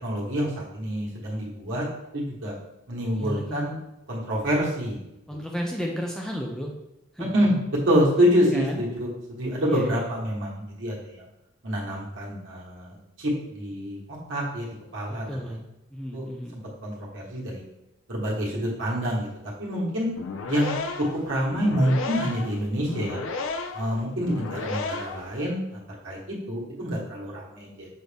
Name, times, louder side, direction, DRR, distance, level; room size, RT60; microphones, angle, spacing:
voice 1, 0.0-1.8 2.1-2.5 2.9-3.8 4.1-5.0 7.2-11.3 11.6-13.3 13.6-14.0 14.3-15.4 16.1-16.2 16.8-17.6 18.1-19.3 19.6-20.1 20.5-23.2 23.7-25.8 26.0-27.9, equal, 60° right, -5 dB, 1.4 m, -27 dB
voice 2, 3.1-3.6 5.3-6.7 7.1-7.3 8.4-8.9 9.7-10.1 15.1-15.6 15.9-16.6, equal, 5° left, 0 dB, 0.3 m, -32 dB
sound 1, 20.1-25.3, left 4 dB, 70° left, 0.4 m, -33 dB
6.1 x 2.6 x 3.3 m, 0.88 s
head